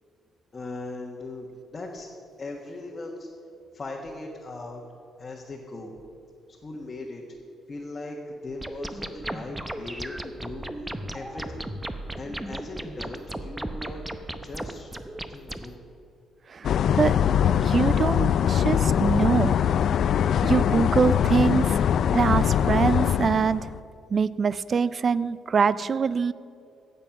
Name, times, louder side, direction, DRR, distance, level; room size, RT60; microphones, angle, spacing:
voice 1, 0.5-2.1 2.4-3.3 3.7-4.8 5.2-5.9 6.5-7.2 7.7-11.7 12.2-14.0 14.4-14.9 15.3-15.8, left 2 dB, 30° left, -2 dB, 1.4 m, -39 dB
sound 1, 8.6-15.7, right 1 dB, 10° right, 0.7 m, -36 dB
sound 2, 16.6-23.8, left 9 dB, 65° left, 0.3 m, -22 dB
voice 2, 17.6-19.6 20.4-21.8 22.1-23.7 24.1-26.3, right 5 dB, 45° right, 17 dB, 0.4 m, -24 dB
16.0 x 6.9 x 5.9 m, 2.5 s
cardioid pair, 90°, 0 cm